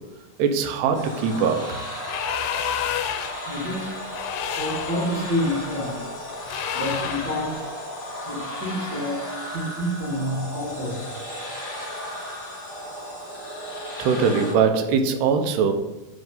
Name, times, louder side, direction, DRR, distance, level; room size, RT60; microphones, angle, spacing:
voice 1, 0.4-1.8 14.0-15.7, right 6 dB, 75° right, 5 dB, 2.8 m, -21 dB
sound 1, 0.9-14.5, equal, 35° left, 3.4 m, -35 dB
sound 2, 2.0-3.5 4.1-5.1 6.5-7.4, left 9 dB, 90° left, 3.0 m, -29 dB
voice 2, 3.5-3.9 4.6-6.0 6.7-7.6 8.2-9.2 9.5-11.0, equal, 40° right, -6 dB, 1.8 m, -28 dB
10.0 x 3.9 x 5.3 m, 0.98 s
omnidirectional pair, 5.1 m